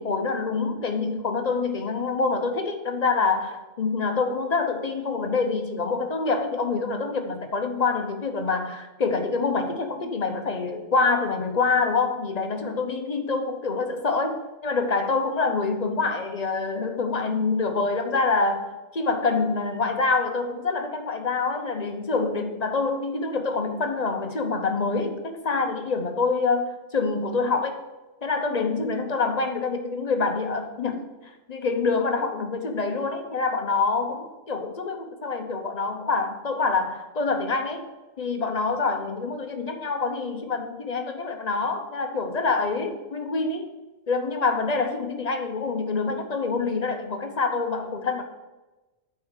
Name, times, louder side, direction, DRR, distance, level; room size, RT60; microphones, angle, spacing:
voice 1, 0.0-14.3 14.6-27.8 28.2-31.1 31.5-37.9 38.2-43.7 44.1-48.2, left 4 dB, 40° left, 5 dB, 0.7 m, -26 dB
8.5 x 4.4 x 6.3 m, 1.1 s
omnidirectional pair, 1.3 m